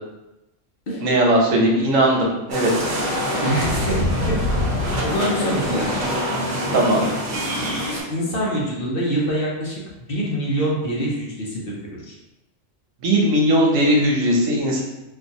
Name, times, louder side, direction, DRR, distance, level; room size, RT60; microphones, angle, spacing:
voice 1, 1.0-2.7 6.7-7.1 13.0-14.8, right 1 dB, 90° right, -2 dB, 1.2 m, -18 dB
sound 1, 2.5-8.0, equal, 50° right, 1.0 m, -24 dB
voice 2, 3.2-4.4 4.7-6.0 8.1-12.1, right 1 dB, 50° left, -4 dB, 0.8 m, -25 dB
3.9 x 2.4 x 2.7 m, 0.97 s
omnidirectional pair, 1.3 m